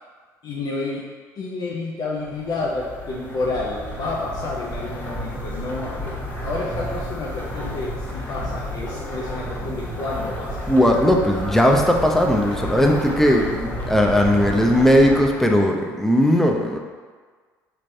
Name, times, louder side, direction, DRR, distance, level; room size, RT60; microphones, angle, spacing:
voice 1, 0.4-1.0 1.4-6.1 6.4-10.6, left 3 dB, 45° left, -3 dB, 0.5 m, -29 dB
sound 1, 2.2-15.7, equal, 20° left, 1.4 m, -31 dB
voice 2, 10.7-16.8, equal, 5° left, 1 dB, 0.6 m, -18 dB
4.3 x 3.1 x 2.6 m, 1.5 s
hypercardioid pair, 60°, 9 cm